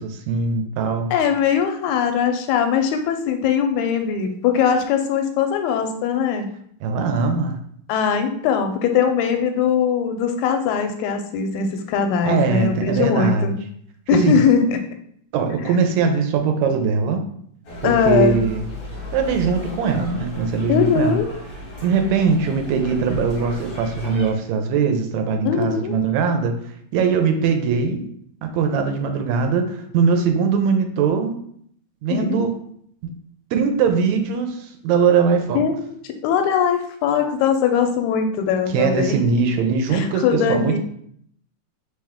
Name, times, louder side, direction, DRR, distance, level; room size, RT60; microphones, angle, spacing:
voice 1, 0.0-1.1 6.8-7.6 12.2-13.6 14.1-14.4 15.3-17.2 17.8-18.7 19.1-21.2 21.8-26.6 26.9-28.1 28.4-31.4 32.0-32.5 33.0-33.1 33.5-35.6 38.7-40.8, right 5 dB, 80° right, 5 dB, 1.9 m, -21 dB
voice 2, 1.1-6.5 7.9-13.6 14.1-14.8 15.6-15.7 17.8-18.4 20.7-21.3 25.4-26.0 32.1-32.4 35.5-36.0 36.2-39.2 39.9-40.8, left 7 dB, 90° left, 6 dB, 2.0 m, -20 dB
sound 1, 17.6-24.3, equal, 60° left, 2.0 m, -35 dB
4.5 x 3.3 x 3.5 m, 0.66 s
omnidirectional pair, 3.3 m